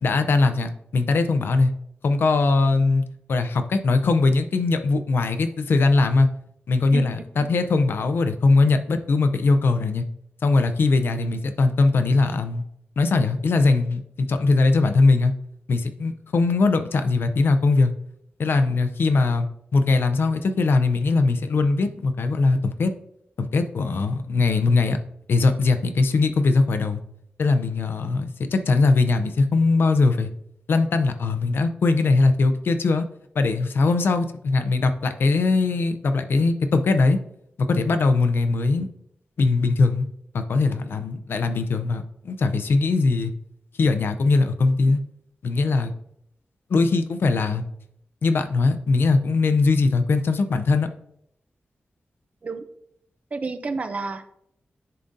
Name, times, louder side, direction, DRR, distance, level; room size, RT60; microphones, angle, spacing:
voice 1, 0.0-1.7 2.0-3.0 3.3-6.3 6.7-10.0 10.4-12.6 13.0-15.3 15.7-17.9 18.4-22.9 23.4-25.0 25.3-27.0 27.4-30.3 30.7-33.0 33.4-37.2 37.6-38.9 39.4-40.1 40.3-43.3 43.8-45.0 45.4-45.9 46.7-47.6 48.2-50.9, left 3 dB, 80° left, 8 dB, 0.5 m, -21 dB
voice 2, 53.3-54.3, right 4 dB, 40° right, 9 dB, 0.5 m, -30 dB
10.5 x 3.8 x 2.6 m, 0.72 s
wide cardioid pair, 180°, 4 cm